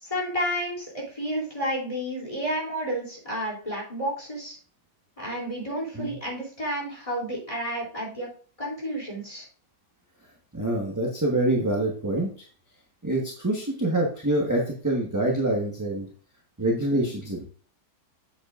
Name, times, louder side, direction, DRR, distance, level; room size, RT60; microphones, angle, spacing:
voice 1, 0.0-4.6 5.2-8.3 8.6-9.4, equal, 20° left, -4 dB, 3.3 m, -31 dB
voice 2, 10.5-12.5 13.0-16.1 16.6-17.5, right 1 dB, 10° right, -2 dB, 1.2 m, -26 dB
8.1 x 7.8 x 2.5 m, 0.42 s
omnidirectional pair, 1.8 m